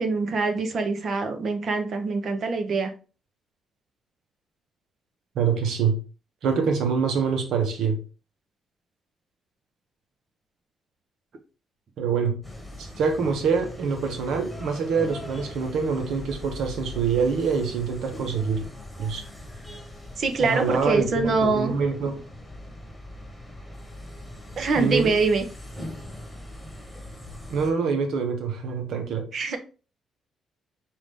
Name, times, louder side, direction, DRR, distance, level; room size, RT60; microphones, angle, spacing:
voice 1, 0.0-2.9 20.2-21.7 24.6-25.4 29.3-29.6, right 3 dB, 55° right, 6 dB, 0.9 m, -24 dB
voice 2, 5.3-6.0 6.4-8.0 12.0-12.3 12.8-18.6 19.0-19.2 20.4-22.2 24.7-25.1 27.5-29.3, right 5 dB, 80° right, 5 dB, 1.1 m, -25 dB
sound 1, 12.4-27.7, left 1 dB, 5° left, 1.3 m, -40 dB
4.8 x 2.7 x 3.6 m, 0.35 s
cardioid pair, 100°, 0 cm